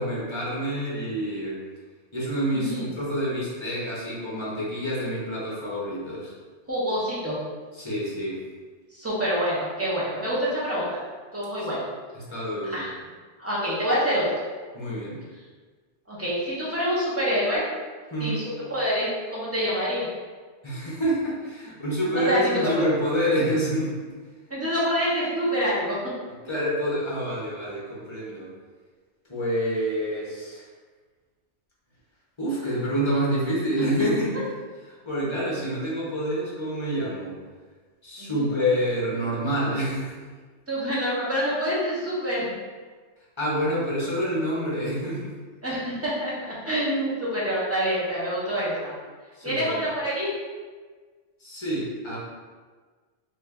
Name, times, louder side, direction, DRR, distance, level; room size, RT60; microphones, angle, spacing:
voice 1, 0.0-1.6 2.1-6.3 7.8-8.4 12.3-12.8 14.7-15.2 18.1-18.4 20.6-24.1 26.4-28.5 29.3-30.6 32.4-34.4 35.0-37.4 38.0-40.1 43.4-45.3 49.4-49.8 51.4-52.2, equal, 30° left, -6 dB, 0.7 m, -27 dB
voice 2, 2.5-2.9 6.7-7.4 8.9-10.9 11.3-11.8 12.6-12.9 13.4-14.4 16.1-17.7 18.2-18.4 18.7-20.1 22.1-22.9 24.5-26.0 38.2-38.5 40.7-42.5 45.6-48.9 49.4-50.3, equal, 15° right, -8 dB, 0.7 m, -26 dB
2.7 x 2.5 x 3.3 m, 1.4 s
omnidirectional pair, 1.2 m